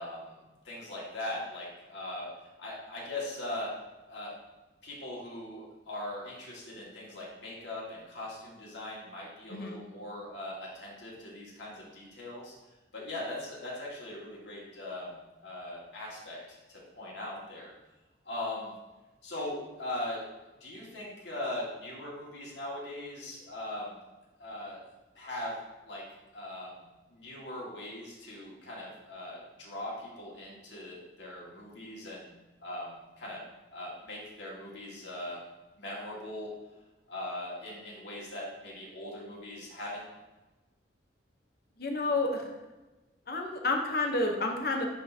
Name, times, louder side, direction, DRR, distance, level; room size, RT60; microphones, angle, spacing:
voice 1, 0.0-3.7 4.1-4.3 4.8-12.5 12.9-17.7 18.3-18.7 19.2-20.2 20.6-24.0 24.4-24.8 25.2-25.6 25.9-26.0 26.3-26.8 27.1-32.3 32.6-33.4 33.7-35.4 35.8-36.5 37.1-40.1, left 1 dB, 90° left, -4 dB, 2.0 m, -40 dB
voice 2, 41.8-42.5 43.3-44.9, left 2 dB, 60° left, 3 dB, 0.9 m, -30 dB
10.0 x 3.8 x 2.8 m, 1.1 s
head